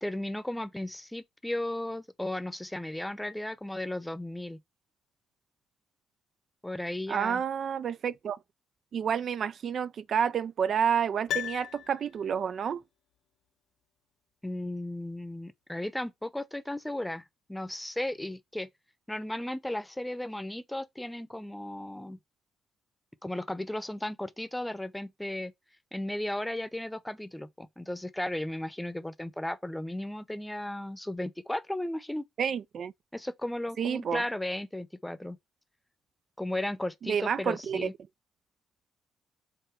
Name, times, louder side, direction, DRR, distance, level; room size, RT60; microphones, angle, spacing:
voice 1, 0.0-4.6 6.6-7.4 14.4-17.2 17.5-18.7 19.1-22.2 23.2-25.5 25.9-32.3 33.1-35.4 36.4-37.9, left 1 dB, 5° left, 0.7 m, -35 dB
voice 2, 7.1-8.4 8.9-12.8 32.4-32.9 33.8-34.2 37.0-37.9, right 7 dB, 55° right, 0.3 m, -29 dB
Piano, 11.3-12.5 12.8-12.9, left 10 dB, 75° left, 0.4 m, -36 dB
5.8 x 3.7 x 5.7 m
cardioid pair, 90°, 0 cm